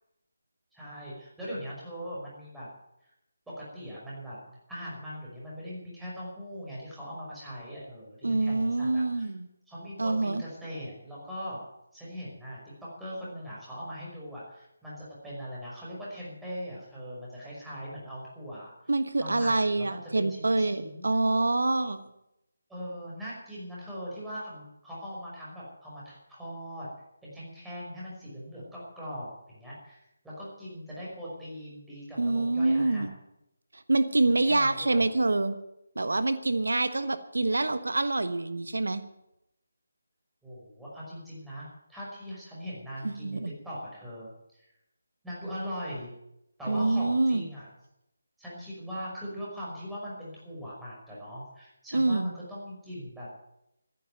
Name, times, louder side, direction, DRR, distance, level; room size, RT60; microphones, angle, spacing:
voice 1, 0.7-2.7 3.5-9.3 9.7-11.6 11.9-18.7 19.2-21.1 22.7-26.9 27.2-33.1 34.4-35.1 40.4-43.4 43.6-44.3 44.6-44.7 45.2-46.1 46.6-47.7 48.4-53.3, equal, 5° right, -8 dB, 5.5 m, -40 dB
voice 2, 8.2-9.5 10.0-10.4 18.9-22.1 32.2-33.1 33.7-35.6 35.9-39.0 43.0-43.5 46.7-47.4 51.9-52.3, right 2 dB, 90° right, 11 dB, 1.3 m, -26 dB
14.5 x 10.0 x 9.2 m, 0.83 s
figure-of-eight pair, 165°, 0 cm